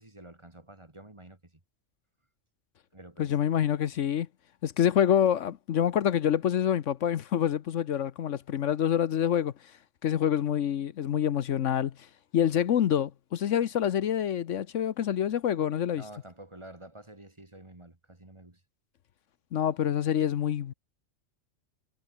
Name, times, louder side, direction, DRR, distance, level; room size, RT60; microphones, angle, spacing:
voice 1, 0.0-1.4 2.9-3.4 15.9-18.6, right 1 dB, 25° right, 2.3 m, -49 dB
voice 2, 3.2-4.3 4.6-9.5 10.0-11.9 12.3-16.0 19.5-20.7, left 9 dB, 75° left, 1.2 m, -26 dB
omnidirectional pair, 1.3 m